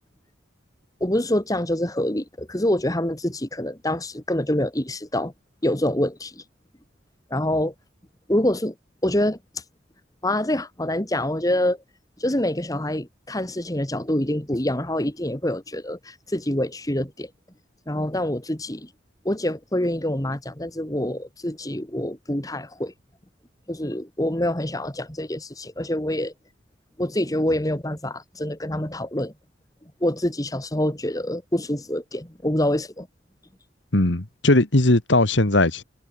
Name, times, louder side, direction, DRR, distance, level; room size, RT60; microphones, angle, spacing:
voice 1, 1.0-5.3 5.6-6.4 7.3-7.7 8.3-8.7 9.0-9.4 10.2-11.8 12.2-17.3 17.9-18.9 19.2-22.9 23.7-26.3 27.0-29.3 30.0-33.1, left 1 dB, 20° left, 2.2 m, -26 dB
voice 2, 33.9-35.8, left 2 dB, 85° left, 2.1 m, -19 dB
head